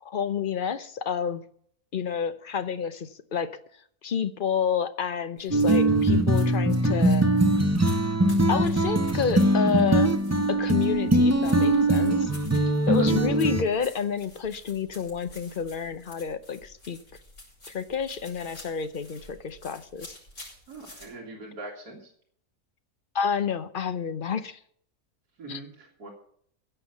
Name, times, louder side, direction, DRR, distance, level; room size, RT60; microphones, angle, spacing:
voice 1, 0.0-1.4 1.9-3.6 4.0-7.3 8.5-10.1 10.5-12.3 12.9-17.0 17.7-20.1 23.1-24.6 25.5-25.6, left 6 dB, 45° left, 12 dB, 0.8 m, -29 dB
sound 1, 5.4-21.1, left 1 dB, 80° left, 6.4 m, -50 dB
sound 2, 5.5-13.6, right 1 dB, 15° right, 0.5 m, -22 dB
voice 2, 20.7-22.1 25.4-26.1, right 2 dB, 80° right, -2 dB, 2.8 m, -41 dB
16.0 x 5.9 x 8.1 m, 0.63 s
omnidirectional pair, 1.6 m